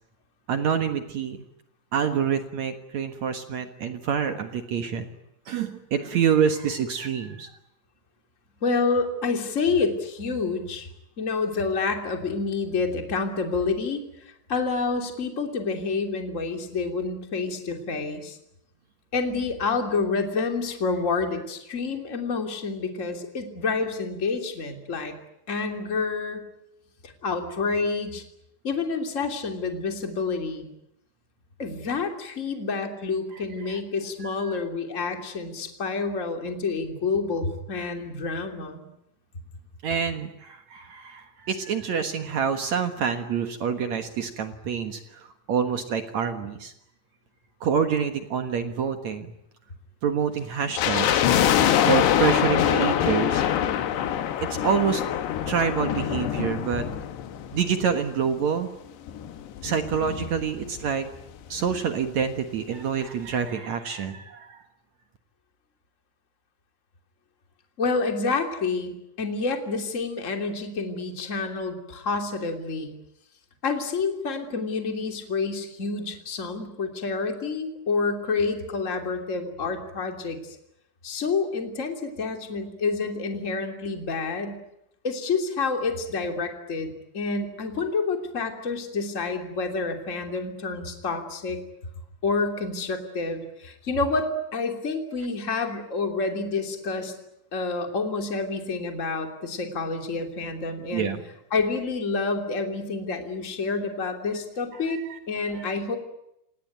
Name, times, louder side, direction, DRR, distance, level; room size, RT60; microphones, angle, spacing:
voice 1, 0.5-1.4 1.9-5.1 5.5-7.5 33.3-33.8 34.4-34.6 39.8-46.7 47.6-49.3 50.0-51.2 51.9-53.4 54.5-55.0 55.5-56.9 57.5-58.7 59.6-61.1 61.5-64.6 95.5-95.6 100.9-101.2 104.9-105.2 105.5-105.7, right 7 dB, 60° right, 7 dB, 1.9 m, -27 dB
voice 2, 8.6-10.9 11.2-14.0 14.5-18.4 19.1-25.1 25.5-26.4 27.0-28.2 28.6-30.7 31.6-38.8 67.8-72.9 73.6-80.5 81.0-84.6 85.0-91.6 92.2-97.1 97.5-101.1 101.5-105.0 105.3-106.0, left 4 dB, 20° left, 4 dB, 2.6 m, -28 dB
sound 1, 50.8-58.0 58.3-58.4 59.1-60.9 61.1-61.2 61.5-61.8 62.2-62.3, left 10 dB, 75° left, 3.6 m, -24 dB
28.5 x 18.5 x 9.4 m, 0.83 s
omnidirectional pair, 5.1 m